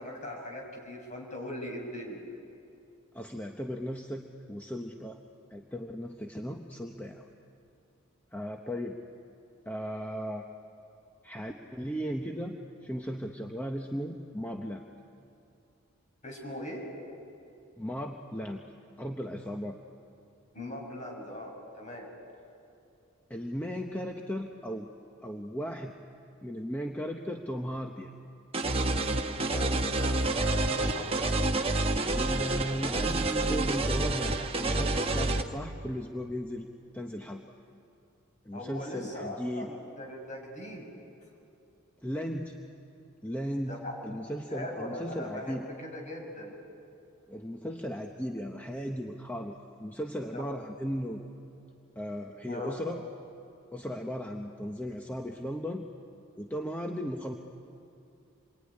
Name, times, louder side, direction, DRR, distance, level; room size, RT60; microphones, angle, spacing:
voice 1, 0.0-2.2 16.2-16.8 20.5-22.1 29.4-31.3 38.5-40.9 43.7-44.0 44.5-46.5 50.3-50.5 52.5-52.8, left 1 dB, 35° left, -1 dB, 6.4 m, -40 dB
voice 2, 3.1-5.2 5.5-7.3 8.3-9.0 9.7-10.4 11.2-12.6 12.8-14.8 17.8-18.6 19.0-19.8 23.3-24.9 25.2-25.9 26.4-28.1 32.0-36.7 36.9-37.4 38.4-39.7 42.0-42.6 43.2-43.8 44.0-45.7 47.3-51.2 52.0-53.0 53.7-55.8 56.4-57.4, equal, 10° left, 2 dB, 0.9 m, -36 dB
sound 1, 28.5-35.4, right 2 dB, 25° right, 1.1 m, -28 dB
27.0 x 22.5 x 9.8 m, 2.7 s
head